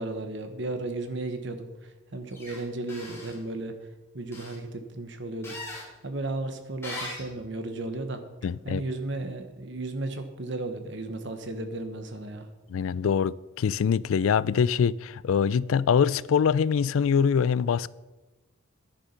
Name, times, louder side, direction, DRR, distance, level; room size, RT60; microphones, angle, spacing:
voice 1, 0.0-1.7 2.1-3.7 4.1-5.6 6.0-8.2 8.6-12.5, right 2 dB, 60° right, 1.3 m, -34 dB
sound 1, 2.3-2.6 2.9-3.4 4.3-4.6 5.4-5.9 6.8-7.3, left 2 dB, 10° left, 2.7 m, -39 dB
voice 2, 8.4-8.8 12.7-17.9, left 7 dB, 85° left, 0.4 m, -24 dB
10.0 x 10.0 x 5.7 m
head